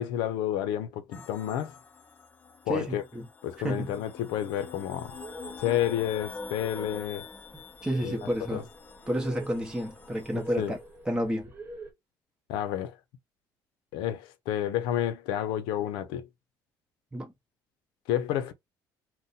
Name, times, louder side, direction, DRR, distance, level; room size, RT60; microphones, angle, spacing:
voice 1, 0.0-1.7 2.7-3.0 3.4-5.1 5.6-7.3 8.0-8.6 10.3-10.7 12.5-13.0 13.9-16.3 18.1-18.5, left 11 dB, 85° left, 0.5 m, -30 dB
sound 1, 1.1-10.8, left 4 dB, 25° left, 0.5 m, -46 dB
voice 2, 2.7-3.2 3.6-4.0 7.8-8.7 9.1-10.8 11.0-11.5 17.1-17.3, equal, 10° right, 0.8 m, -30 dB
sound 2, 5.0-11.9, right 1 dB, 25° right, 1.2 m, -45 dB
2.6 x 2.1 x 3.9 m
cardioid pair, 110°, 8 cm